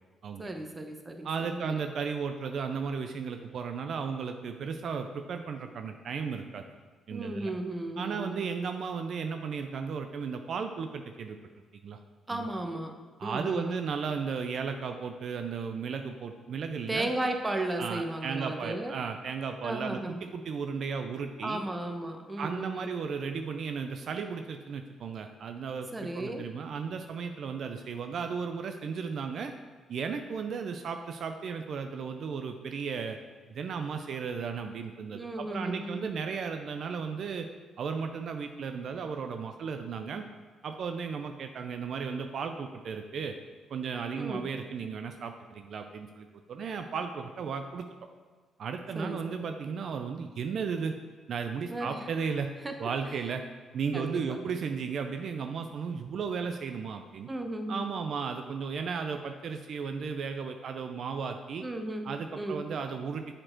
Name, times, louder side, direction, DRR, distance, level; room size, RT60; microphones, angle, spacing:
voice 1, 0.4-1.7 7.1-8.5 12.3-12.9 13.2-13.8 16.9-19.0 19.6-20.2 21.4-22.9 25.9-26.5 35.1-36.1 44.1-44.4 48.9-49.4 51.7-52.1 52.6-52.9 53.9-54.4 57.3-57.9 61.6-62.6, right 1 dB, 20° right, 5 dB, 0.8 m, -35 dB
voice 2, 1.2-6.6 7.1-7.5 8.0-11.4 11.8-12.0 12.3-12.5 13.2-17.1 17.8-21.6 22.4-29.5 29.9-33.2 33.5-37.5 37.8-40.2 40.6-43.4 43.7-47.9 48.6-50.9 51.3-52.5 52.8-53.4 53.7-57.3 57.7-61.6 62.0-63.4, right 5 dB, 60° right, 6 dB, 0.4 m, -35 dB
7.5 x 4.3 x 4.4 m, 1.5 s
cardioid pair, 90°, 0 cm